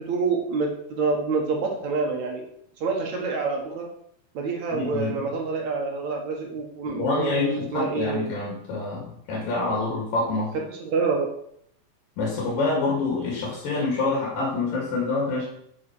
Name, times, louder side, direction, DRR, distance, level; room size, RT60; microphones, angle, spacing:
voice 1, 0.0-2.4 2.8-3.9 4.3-8.4 10.7-11.3, right 4 dB, 60° right, 1 dB, 2.4 m, -27 dB
voice 2, 4.7-5.2 6.8-10.6 12.2-15.5, left 3 dB, 70° left, -4 dB, 4.2 m, -27 dB
10.5 x 5.9 x 6.1 m, 0.71 s
omnidirectional pair, 4.1 m